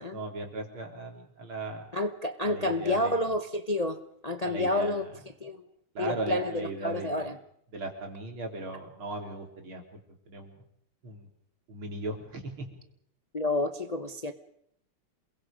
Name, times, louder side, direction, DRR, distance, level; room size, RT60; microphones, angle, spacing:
voice 1, 0.0-1.8 2.4-3.3 4.4-5.1 5.9-7.3 7.7-9.8 10.3-10.6 11.0-11.3 11.7-12.7, right 2 dB, 70° right, 2 dB, 4.3 m, -37 dB
voice 2, 1.9-5.0 5.4-5.6 6.0-7.3 13.3-14.3, left 1 dB, 45° left, 8 dB, 0.5 m, -29 dB
28.5 x 22.0 x 5.2 m, 0.71 s
omnidirectional pair, 2.4 m